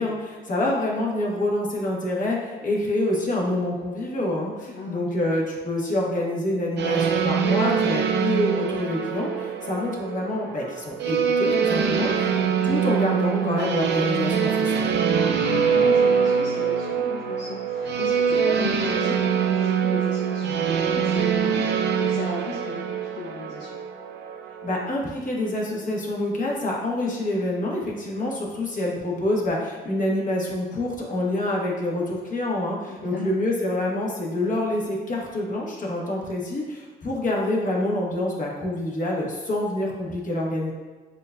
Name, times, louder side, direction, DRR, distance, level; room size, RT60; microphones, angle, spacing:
voice 1, 0.0-12.3 12.6-14.8 24.6-40.7, left 1 dB, 40° left, -3 dB, 1.2 m, -26 dB
voice 2, 4.6-5.3 15.4-23.8 32.9-33.3, left 3 dB, 65° left, -3 dB, 0.6 m, -36 dB
sound 1, 6.8-24.9, right 7 dB, 60° right, 0.5 m, -24 dB
7.3 x 2.5 x 2.2 m, 1.4 s
cardioid pair, 90°, 20 cm